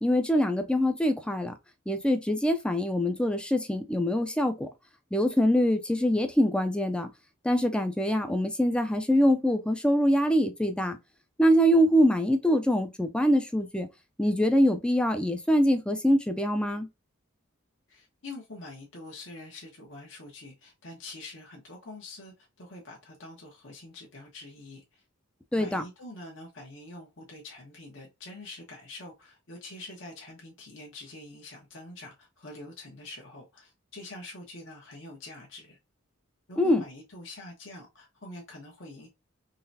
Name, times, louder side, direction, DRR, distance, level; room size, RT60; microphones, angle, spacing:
voice 1, 0.0-1.5 1.9-4.7 5.1-7.1 7.4-11.0 11.4-13.9 14.2-16.9 25.5-25.8 36.6-36.8, equal, 5° left, 0.5 m, -24 dB
voice 2, 17.9-25.0 25.6-35.8 36.5-39.1, left 2 dB, 60° left, 1.1 m, -45 dB
3.9 x 3.1 x 2.7 m
head